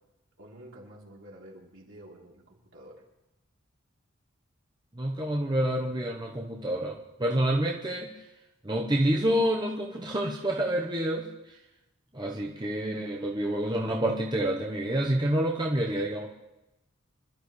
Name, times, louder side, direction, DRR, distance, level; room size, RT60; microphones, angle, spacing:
voice 1, 0.4-3.0, right 1 dB, 65° right, -3 dB, 3.7 m, -49 dB
voice 2, 4.9-8.1 8.6-11.6 12.1-16.3, right 1 dB, 20° right, -2 dB, 1.1 m, -28 dB
26.0 x 12.5 x 3.3 m, 0.96 s
head